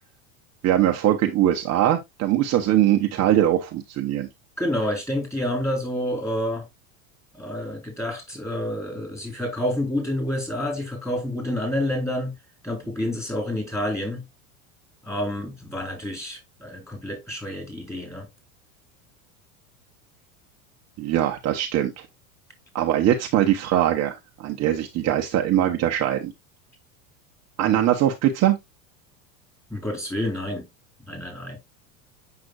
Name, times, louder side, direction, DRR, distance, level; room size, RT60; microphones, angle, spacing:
voice 1, 0.6-4.3 21.0-22.1 22.7-26.3 27.6-28.6, right 12 dB, 40° right, 0.9 m, -21 dB
voice 2, 4.6-6.7 7.3-12.3 12.6-14.2 15.0-18.3 29.7-30.7 31.1-31.6, left 1 dB, 5° left, 3.7 m, -28 dB
7.6 x 5.9 x 2.4 m
hypercardioid pair, 100°, 42 cm